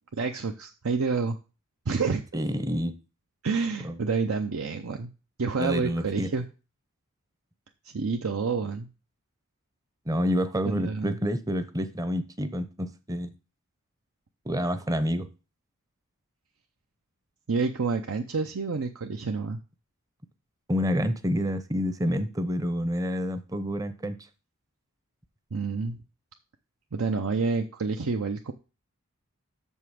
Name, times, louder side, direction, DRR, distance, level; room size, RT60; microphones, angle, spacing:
voice 1, 0.1-1.4 1.9-2.2 3.4-5.1 5.4-6.4 7.9-8.9 10.7-11.2 17.5-19.6 25.5-26.0 26.9-28.5, right 4 dB, 75° right, 0.7 m, -28 dB
voice 2, 2.3-3.0 3.8-4.0 5.6-6.3 10.1-13.3 14.5-15.3 20.7-24.2, equal, 15° right, 0.7 m, -28 dB
6.9 x 5.5 x 6.2 m
head